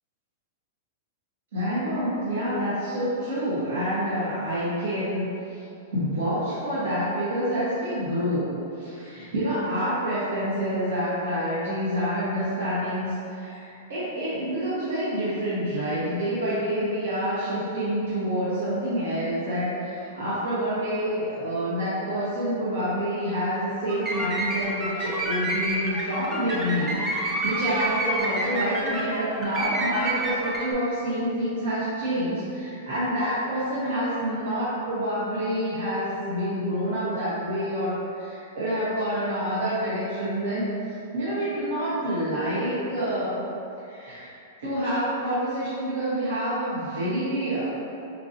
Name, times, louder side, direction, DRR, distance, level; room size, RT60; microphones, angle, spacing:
voice 1, 1.5-5.6 5.9-40.7 41.1-43.4 43.8-44.3 44.6-47.7, equal, 90° right, -12 dB, 1.1 m, -27 dB
sound 1, 23.9-30.7, right 1 dB, 15° right, 0.5 m, -29 dB
4.6 x 2.6 x 2.6 m, 2.7 s
supercardioid pair, 160°, 0 cm